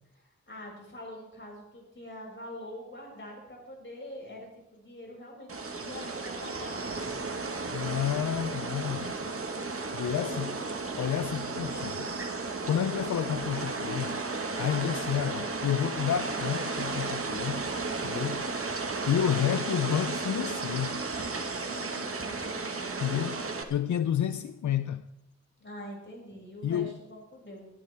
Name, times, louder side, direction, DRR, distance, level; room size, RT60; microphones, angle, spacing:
voice 1, 0.1-8.6 10.1-10.8 18.8-19.1 21.7-23.2 25.6-27.7, equal, 40° left, 6.4 m, -45 dB
sound 1, 5.5-23.6, right 3 dB, 50° right, 1.5 m, -34 dB
voice 2, 7.7-9.2 9.9-10.5 11.0-14.2 14.6-17.6 18.0-18.5 18.8-21.0 23.0-25.1 26.6-26.9, left 10 dB, 80° left, 0.5 m, -30 dB
22.0 x 12.0 x 3.4 m
wide cardioid pair, 105°, 29 cm